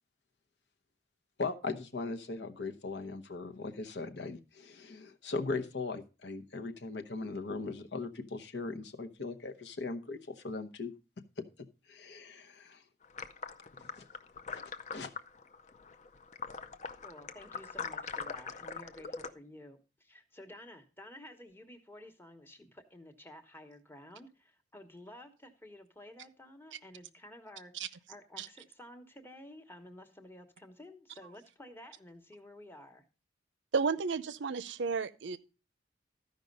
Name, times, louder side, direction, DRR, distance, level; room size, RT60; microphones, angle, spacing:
voice 1, 1.4-10.9 11.9-12.8 13.8-14.1 14.5-14.6 14.9-15.1, left 3 dB, 70° left, 0.9 m, -39 dB
sound 1, 13.0-19.3, left 5 dB, 40° left, 0.5 m, -42 dB
voice 2, 17.0-33.0, left 1 dB, 10° left, 1.1 m, -52 dB
voice 3, 33.7-35.4, right 5 dB, 85° right, 0.6 m, -32 dB
13.0 x 5.3 x 5.3 m
head